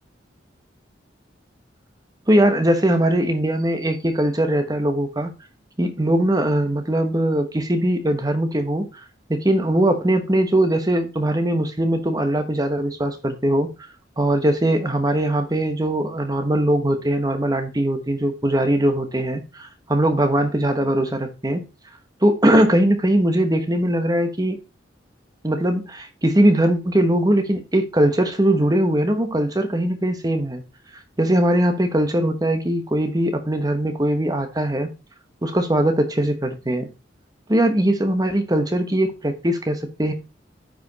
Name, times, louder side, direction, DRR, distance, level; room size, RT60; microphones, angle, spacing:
voice 1, 2.3-5.3 5.8-8.9 9.3-13.7 14.2-21.7 22.2-24.6 25.4-30.6 31.2-34.9 35.4-36.9 37.5-40.1, right 1 dB, 20° right, 1.1 m, -20 dB
9.3 x 5.1 x 4.0 m
head